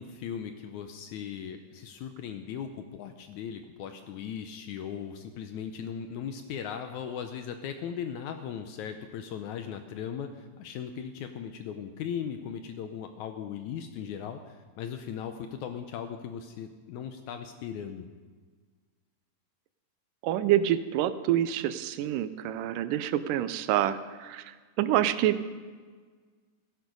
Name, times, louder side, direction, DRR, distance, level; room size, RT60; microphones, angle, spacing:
voice 1, 0.0-18.1, left 8 dB, 75° left, 7 dB, 1.8 m, -38 dB
voice 2, 20.2-25.4, right 12 dB, 80° right, 13 dB, 2.1 m, -27 dB
16.5 x 10.5 x 5.2 m, 1.5 s
omnidirectional pair, 3.9 m